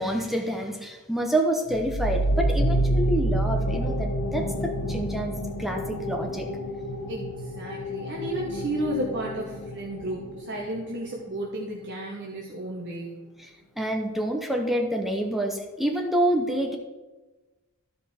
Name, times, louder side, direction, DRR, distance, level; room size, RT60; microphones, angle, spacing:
voice 1, 0.0-6.5 13.8-16.8, right 1 dB, ahead, 2 dB, 0.8 m, -27 dB
sound 1, 1.7-11.0, right 1 dB, 75° left, 1.0 m, -28 dB
voice 2, 7.1-13.2, right 1 dB, 55° right, -2 dB, 1.2 m, -33 dB
13.5 x 5.2 x 4.3 m, 1.2 s
head